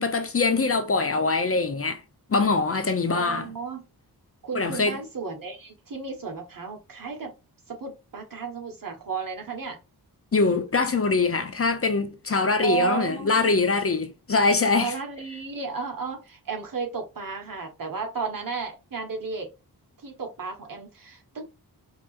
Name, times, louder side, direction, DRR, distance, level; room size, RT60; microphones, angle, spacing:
voice 1, 0.0-2.0 2.3-3.5 4.5-5.0 10.3-14.9, left 4 dB, 35° left, 0.6 m, -23 dB
voice 2, 3.1-3.8 4.4-7.3 7.7-9.8 12.6-13.5 14.7-19.5 20.0-21.5, right 5 dB, 55° right, 1.4 m, -33 dB
4.6 x 2.9 x 2.5 m
wide cardioid pair, 90°, 40 cm